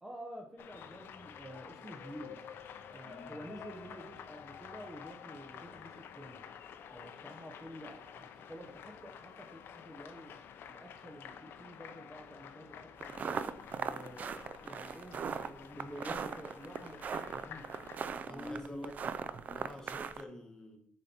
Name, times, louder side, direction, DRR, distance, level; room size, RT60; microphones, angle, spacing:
voice 1, 0.0-2.4 2.9-6.5 6.9-10.4 10.7-13.4 13.7-17.8 18.3-18.9 19.8-20.0, equal, 10° right, 0 dB, 0.7 m, -49 dB
sound 1, 0.6-18.0, left 8 dB, 60° left, 0.5 m, -50 dB
voice 2, 3.0-3.4 18.3-18.9 19.5-20.8, left 1 dB, 15° left, 2 dB, 1.2 m, -48 dB
sound 2, 13.0-20.2, right 6 dB, 40° right, 0.4 m, -39 dB
6.8 x 4.3 x 4.2 m, 0.72 s
cardioid pair, 140°, 4 cm